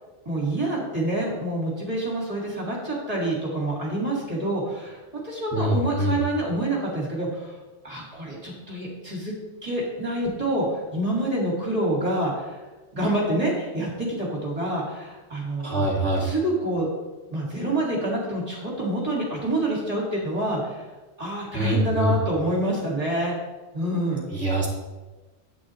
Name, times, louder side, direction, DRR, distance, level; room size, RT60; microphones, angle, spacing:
voice 1, 0.3-7.6 7.8-9.3 9.6-12.6 12.9-15.9 16.2-16.9 17.3-20.9 21.2-23.4 23.7-24.2, right 1 dB, 30° right, -4 dB, 2.4 m, -27 dB
voice 2, 5.5-6.2 15.6-16.3 21.5-22.2 24.3-24.7, right 1 dB, 5° left, -7 dB, 2.1 m, -24 dB
10.5 x 8.8 x 3.2 m, 1.2 s
omnidirectional pair, 1.2 m